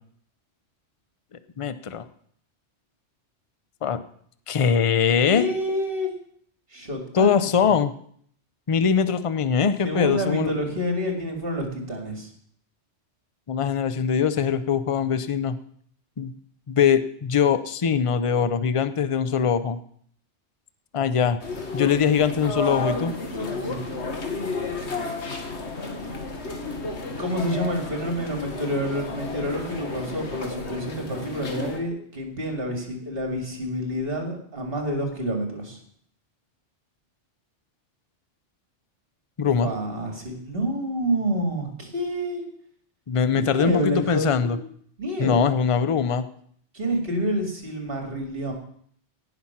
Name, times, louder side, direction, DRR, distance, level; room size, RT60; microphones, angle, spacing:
voice 1, 1.6-2.0 3.8-4.0 4.5-5.5 7.1-7.9 8.7-10.5 13.5-15.6 16.2-16.4 16.7-19.8 20.9-21.4 21.7-23.2 39.4-39.7 43.1-44.6 45.2-46.2, left 7 dB, 35° left, 12 dB, 0.5 m, -22 dB
voice 2, 5.3-6.1 6.7-7.3 9.8-12.3 23.5-23.8 27.2-35.8 39.6-42.4 43.3-44.6 45.0-45.5 46.7-48.5, equal, 50° right, 3 dB, 2.6 m, -28 dB
sound 1, 21.4-31.8, left 3 dB, 65° left, 1.8 m, -32 dB
17.0 x 6.0 x 5.8 m, 0.62 s
omnidirectional pair, 1.2 m